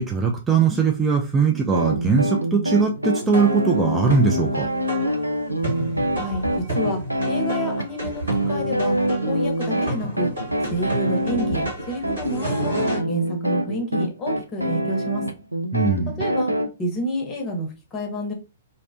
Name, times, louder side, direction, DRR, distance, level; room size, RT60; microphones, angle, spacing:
voice 1, 0.0-4.7 15.7-16.2, right 5 dB, 10° right, 0 dB, 0.4 m, -20 dB
sound 1, 1.7-16.7, equal, 85° right, 0.3 m, -25 dB
sound 2, 3.3-13.0, right 1 dB, 70° right, 1.3 m, -31 dB
voice 2, 6.1-6.5 6.7-7.0 7.3-9.0 9.3-10.3 10.7-12.8 13.1-15.2 16.2-16.5 16.8-18.3, equal, 25° left, 3 dB, 0.8 m, -29 dB
2.5 x 2.1 x 2.6 m, 0.29 s
figure-of-eight pair, 115°, 0 cm